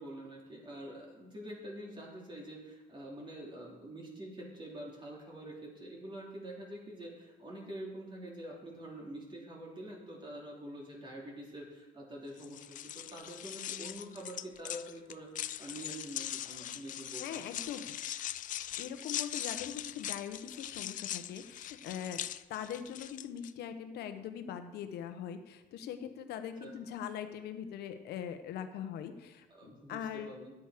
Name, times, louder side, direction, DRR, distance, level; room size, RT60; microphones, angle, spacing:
voice 1, 0.0-17.5 26.6-26.7 29.5-30.5, right 1 dB, 30° right, -3 dB, 3.3 m, -46 dB
sound 1, 12.4-23.5, left 12 dB, 50° left, 0.4 m, -41 dB
voice 2, 17.2-17.9 18.8-22.2 22.5-30.3, left 8 dB, 75° left, 9 dB, 1.1 m, -41 dB
11.0 x 8.3 x 5.1 m, 1.1 s
cardioid pair, 110°, 17 cm